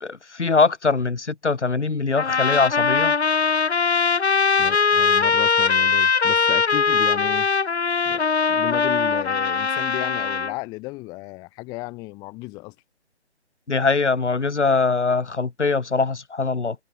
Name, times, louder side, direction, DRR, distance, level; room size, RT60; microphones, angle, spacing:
voice 1, 0.0-3.2 13.7-16.8, left 4 dB, 85° left, 1.9 m, -22 dB
sound 1, 2.1-10.5, left 5 dB, 70° left, 1.9 m, -21 dB
voice 2, 4.6-7.5 8.1-12.7, left 23 dB, 10° left, 2.1 m, -34 dB
figure-of-eight pair, 160°, 34 cm